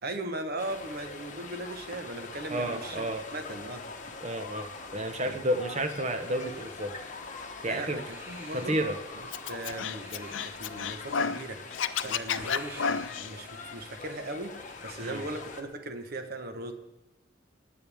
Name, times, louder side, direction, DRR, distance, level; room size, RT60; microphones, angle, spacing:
voice 1, 0.0-3.8 5.1-5.4 7.7-8.8 9.5-11.6 12.0-16.7, right 1 dB, 55° right, 6 dB, 1.2 m, -38 dB
sound 1, 0.6-15.6, left 4 dB, 45° left, 1.1 m, -43 dB
voice 2, 2.5-3.2 4.2-7.0 7.6-8.0 8.5-9.0 15.0-15.2, right 1 dB, 35° right, 7 dB, 1.1 m, -31 dB
Crying sobbing, 6.4-15.6, equal, 10° right, 2.1 m, -52 dB
Scratching (performance technique), 9.3-11.4 11.7-13.3, left 6 dB, 85° left, 0.5 m, -31 dB
18.0 x 9.1 x 3.5 m, 0.99 s
head